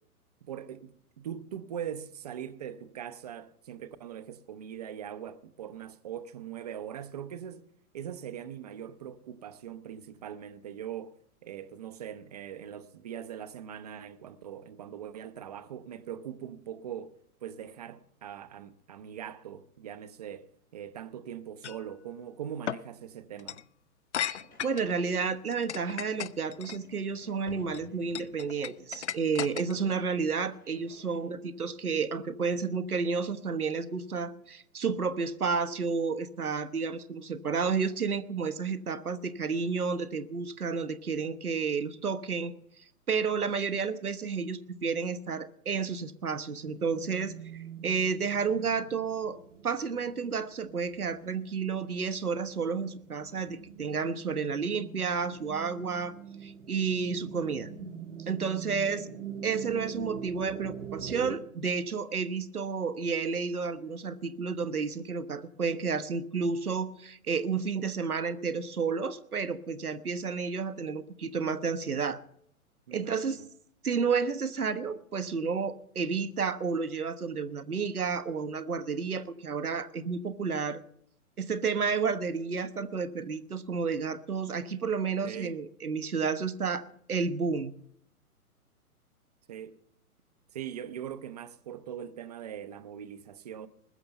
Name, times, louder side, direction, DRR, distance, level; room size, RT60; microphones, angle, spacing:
voice 1, 0.4-7.6 7.9-23.6 58.7-59.1 72.9-73.5 85.2-85.5 89.5-89.7 90.5-93.7, right 9 dB, 25° right, 0.6 m, -41 dB
sound 1, 21.6-21.8 22.7-22.8 23.4-23.6 24.1-24.9 25.5-26.8 27.5-27.8 28.1-29.9, left 10 dB, 50° left, 0.4 m, -35 dB
sound 2, 24.2-31.2, left 1 dB, 80° left, 4.9 m, -56 dB
voice 2, 24.2-42.5 43.1-49.4 49.6-56.1 56.4-57.7 58.3-59.1 59.4-72.2 72.9-73.4 73.8-80.8 81.4-87.7, right 5 dB, 75° right, 1.1 m, -31 dB
sound 3, 46.6-61.4, right 8 dB, 55° right, 1.3 m, -44 dB
20.5 x 6.8 x 6.9 m
figure-of-eight pair, 120°, 45 cm